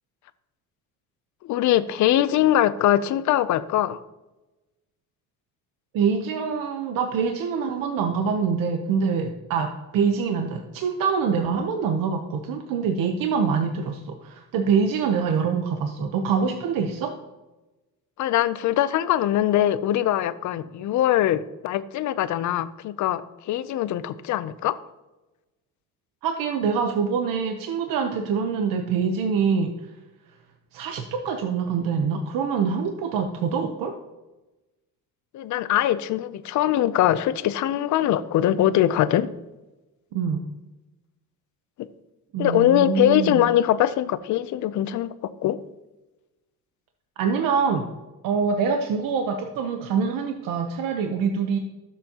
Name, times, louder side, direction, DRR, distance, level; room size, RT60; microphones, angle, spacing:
voice 1, 1.4-4.0 18.2-24.8 35.3-39.3 41.8-41.9 42.4-45.1 45.4-45.6, left 12 dB, 60° left, 15 dB, 0.6 m, -22 dB
voice 2, 5.9-17.1 26.2-29.7 30.7-33.9 40.1-40.4 42.3-43.4 47.2-47.8 48.2-51.6, right 6 dB, 80° right, 5 dB, 0.9 m, -25 dB
12.5 x 7.6 x 2.9 m, 1.1 s
cardioid pair, 140°, 33 cm